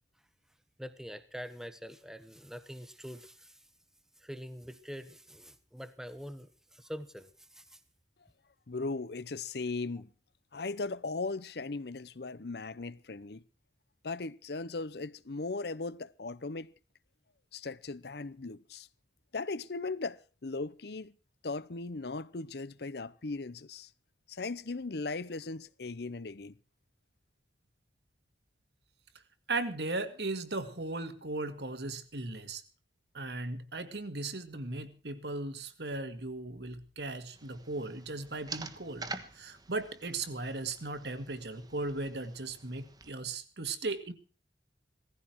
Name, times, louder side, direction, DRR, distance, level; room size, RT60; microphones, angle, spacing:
voice 1, 0.8-3.6 4.2-7.8, equal, 5° right, 1.1 m, -45 dB
voice 2, 8.7-10.1 10.5-13.4 14.0-16.7 17.5-18.9 19.3-21.1 21.4-23.9 24.3-26.6, left 3 dB, 65° left, 0.8 m, -38 dB
voice 3, 29.5-32.6 33.1-39.1 39.3-44.1, right 2 dB, 65° right, 2.0 m, -37 dB
sound 1, 37.3-43.1, right 4 dB, 20° right, 1.3 m, -47 dB
18.0 x 15.0 x 4.6 m
head